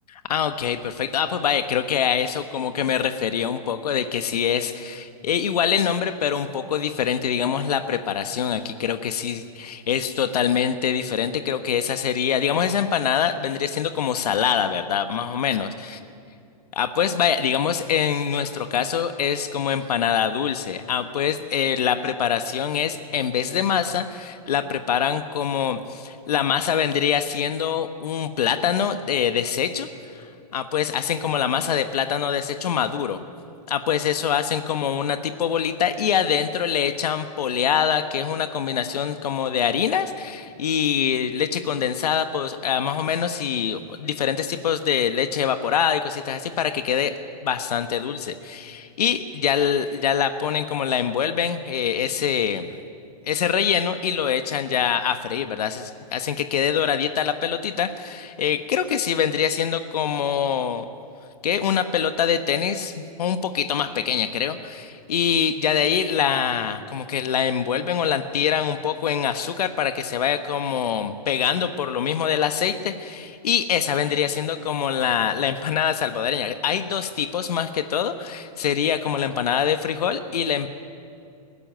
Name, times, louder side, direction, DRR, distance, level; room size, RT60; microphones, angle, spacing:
voice 1, 0.1-16.0 16.8-29.9 30.1-30.2 30.5-33.2 33.7-47.1 47.4-52.7 53.2-60.9 61.4-80.7, left 8 dB, 75° left, 9 dB, 1.3 m, -24 dB
21.0 x 15.5 x 9.3 m, 2.4 s
hypercardioid pair, 125°, 20 cm